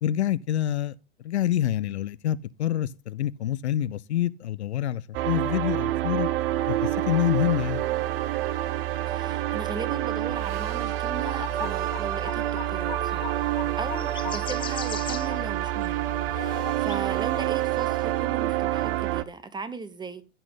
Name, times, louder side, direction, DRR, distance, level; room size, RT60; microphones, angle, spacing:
voice 1, 0.0-0.9 1.2-6.3 6.7-7.8, left 12 dB, 75° left, 0.6 m, -27 dB
sound 1, 5.1-19.2, right 14 dB, 55° right, 0.8 m, -27 dB
voice 2, 9.1-20.2, right 4 dB, 15° right, 0.9 m, -38 dB
sound 2, 11.3-17.6, left 8 dB, 15° left, 0.5 m, -39 dB
14.5 x 6.0 x 3.9 m
figure-of-eight pair, 95°, 34 cm